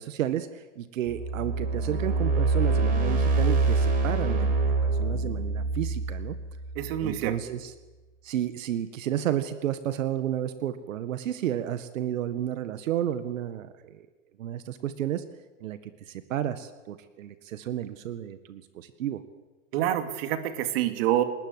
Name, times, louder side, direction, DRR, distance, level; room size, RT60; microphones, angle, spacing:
voice 1, 0.0-6.4 7.0-7.7 8.2-14.0 14.4-15.2 15.6-19.2, right 11 dB, 85° right, 11 dB, 1.8 m, -32 dB
sound 1, 1.1-7.3, right 3 dB, 20° right, 4.9 m, -26 dB
voice 2, 6.8-7.4 19.7-21.2, right 12 dB, 50° right, 7 dB, 2.7 m, -27 dB
28.0 x 20.0 x 8.2 m, 1.2 s
supercardioid pair, 165°, 38 cm